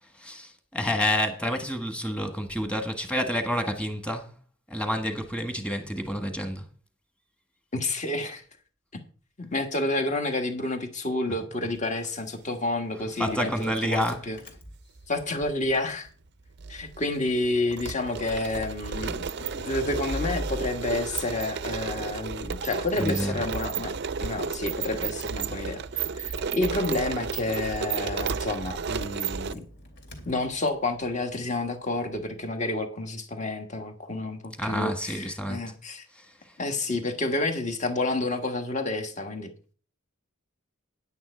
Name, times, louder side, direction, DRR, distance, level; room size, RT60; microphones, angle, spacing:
voice 1, 0.1-4.3 4.7-6.6 13.2-14.3 22.9-23.4 34.6-35.6 36.1-36.6, equal, 5° left, 1.5 m, -29 dB
voice 2, 7.7-8.4 9.4-14.4 15.1-16.1 16.7-19.3 19.6-23.9 24.2-29.7 30.2-36.0 36.6-39.5, left 2 dB, 35° left, 1.5 m, -29 dB
Engine starting, 13.4-32.4, equal, 55° left, 2.7 m, -45 dB
sound 1, 13.7-14.0 15.0-15.8 16.1-16.2 16.6-29.5, right 6 dB, 55° right, 0.5 m, -33 dB
9.9 x 9.3 x 4.5 m
head